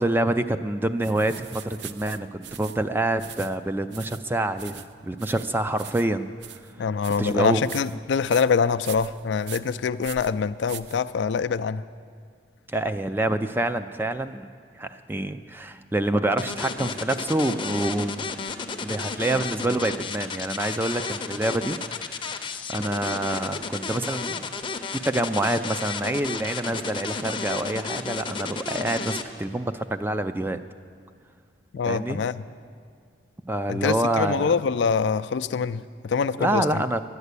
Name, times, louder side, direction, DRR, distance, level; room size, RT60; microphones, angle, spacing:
voice 1, 0.0-6.3 7.2-7.6 12.7-14.5 14.8-18.2 18.8-21.8 22.1-24.5 25.0-30.6 31.9-32.2 33.5-34.5 36.4-37.0, right 1 dB, 10° right, 10 dB, 0.4 m, -26 dB
sound 1, 1.0-11.5, right 10 dB, 70° right, 0.5 m, -43 dB
voice 2, 6.8-11.8 31.7-32.4 33.7-36.8, left 5 dB, 75° left, 11 dB, 0.4 m, -25 dB
sound 2, 16.4-29.2, left 5 dB, 25° left, 0.6 m, -32 dB
12.0 x 9.6 x 8.2 m, 2.2 s
head